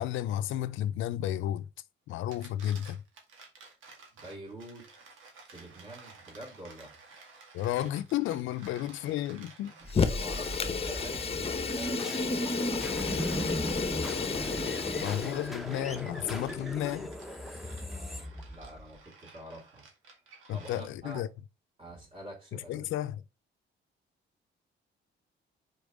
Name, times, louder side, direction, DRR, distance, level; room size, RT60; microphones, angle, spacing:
voice 1, 0.0-1.7 2.1-3.0 7.5-9.7 15.0-17.1 20.5-21.3 22.5-23.2, left 12 dB, 85° left, 0.6 m, -32 dB
sound 1, 2.1-21.2, right 4 dB, 90° right, 1.9 m, -53 dB
voice 2, 4.1-4.9 5.5-7.0 8.6-8.7 9.7-14.0 14.8-15.2 17.9-19.9 20.5-21.2 21.8-23.1, right 1 dB, 30° right, 2.7 m, -47 dB
Fire, 9.9-15.5, left 5 dB, 30° left, 0.8 m, -32 dB
sound 2, 9.9-19.0, equal, ahead, 0.9 m, -36 dB
5.2 x 4.7 x 4.7 m
cardioid pair, 130°, 20 cm